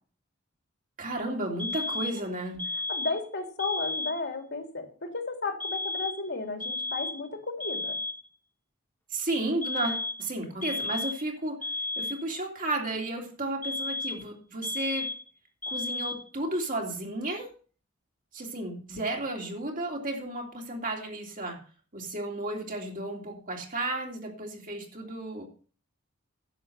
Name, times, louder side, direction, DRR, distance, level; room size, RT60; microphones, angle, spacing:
voice 1, 1.0-2.6 9.1-15.1 15.7-17.5 18.3-21.6 21.9-25.4, right 2 dB, 45° right, 0 dB, 3.1 m, -33 dB
sound 1, 1.6-2.3 2.6-3.3 3.6-4.3 5.6-6.3 6.6-7.3 7.6-8.3 9.6-10.3 10.6-11.3 11.6-12.3 13.6-14.3 14.6-15.3 15.6-16.3, left 2 dB, 10° left, 1.3 m, -33 dB
voice 2, 2.9-7.9, left 3 dB, 60° left, 4 dB, 2.9 m, -34 dB
11.0 x 7.3 x 6.8 m, 0.41 s
head